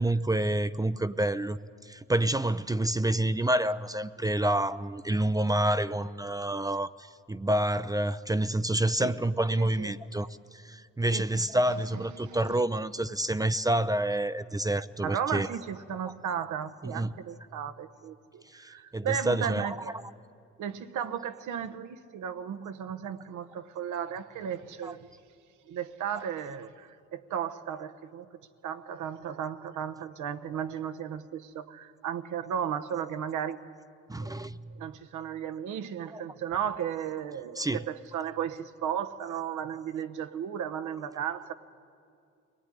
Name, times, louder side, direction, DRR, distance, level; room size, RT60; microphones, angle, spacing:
voice 1, 0.0-15.5 16.8-17.1 18.5-19.8 24.8-24.9 34.1-34.7 36.1-36.2 37.6-37.8, right 1 dB, 10° right, 13 dB, 0.5 m, -28 dB
voice 2, 9.6-10.0 11.1-11.4 11.9-12.6 15.0-19.9 20.6-25.1 25.7-28.3 28.6-33.6 34.2-34.4 34.7-41.5, right 8 dB, 80° right, 10 dB, 1.1 m, -35 dB
23.0 x 18.0 x 10.0 m, 2.5 s
cardioid pair, 90°, 30 cm